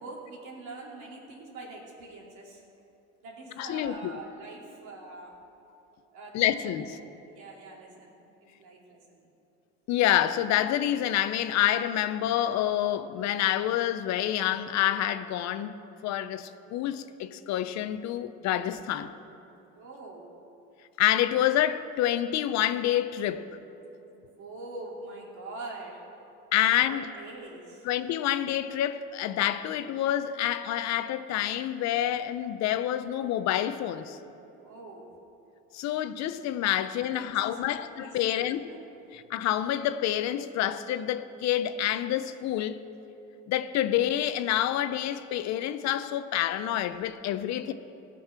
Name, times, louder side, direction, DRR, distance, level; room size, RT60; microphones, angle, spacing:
voice 1, 0.0-2.6 3.2-5.3 6.1-6.9 7.3-9.3 19.7-20.3 24.0-26.0 26.6-27.9 34.6-35.1 37.1-38.8, right 2 dB, 75° right, 2.8 m, -44 dB
voice 2, 3.6-4.1 6.3-7.0 9.9-19.1 21.0-23.5 26.5-27.1 27.9-34.2 35.7-38.6 39.1-42.8 43.5-47.7, left 12 dB, 65° left, 0.7 m, -28 dB
16.5 x 6.2 x 5.9 m
supercardioid pair, 100°, 30 cm